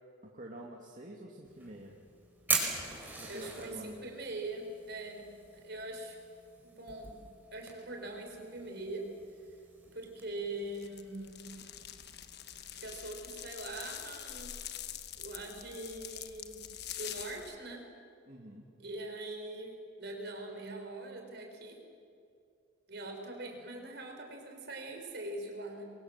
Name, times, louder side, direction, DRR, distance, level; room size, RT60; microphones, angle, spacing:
voice 1, 0.2-2.0 3.2-4.0 18.3-18.7, right 1 dB, 40° right, -1 dB, 2.4 m, -47 dB
Fire, 1.4-13.0, right 3 dB, 10° right, 5.2 m, -42 dB
voice 2, 3.3-5.2 5.5-6.2 6.6-7.2 7.5-9.0 9.9-11.5 12.8-14.6 15.2-16.6 17.0-17.8 18.8-21.8 22.9-25.8, right 2 dB, 60° right, 3 dB, 4.9 m, -42 dB
sound 1, 10.7-17.6, left 10 dB, 55° left, 1.2 m, -45 dB
28.0 x 23.0 x 7.6 m, 2.4 s
head